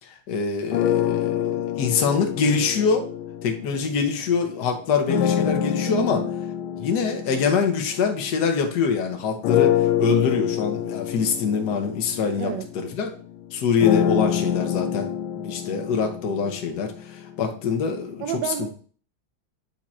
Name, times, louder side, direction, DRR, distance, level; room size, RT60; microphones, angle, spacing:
voice 1, 0.0-3.0 3.4-6.2 6.8-13.1 13.5-18.2, left 5 dB, 60° left, 4 dB, 1.5 m, -24 dB
sound 1, 0.7-4.3 5.1-8.9 9.4-17.4, left 10 dB, 80° left, 1.3 m, -26 dB
voice 2, 5.9-6.3 12.4-12.7 18.2-18.7, right 9 dB, 75° right, 9 dB, 1.1 m, -29 dB
7.5 x 3.8 x 4.2 m, 0.43 s
omnidirectional pair, 2.3 m